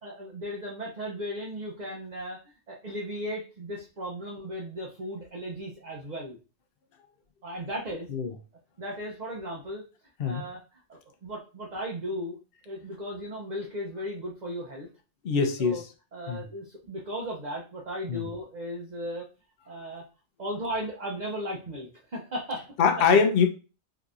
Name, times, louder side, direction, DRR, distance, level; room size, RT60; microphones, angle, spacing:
voice 1, 0.0-2.4 2.7-6.4 7.4-8.1 8.8-9.9 10.2-10.6 10.9-12.4 12.7-14.9 15.6-15.8 16.1-19.3 19.7-20.1 20.4-22.7, equal, 45° right, 0.6 m, -36 dB
voice 2, 15.2-15.8 16.3-16.4 18.1-18.3 22.8-23.5, left 5 dB, 55° left, 0.7 m, -23 dB
3.8 x 2.7 x 2.4 m
omnidirectional pair, 1.4 m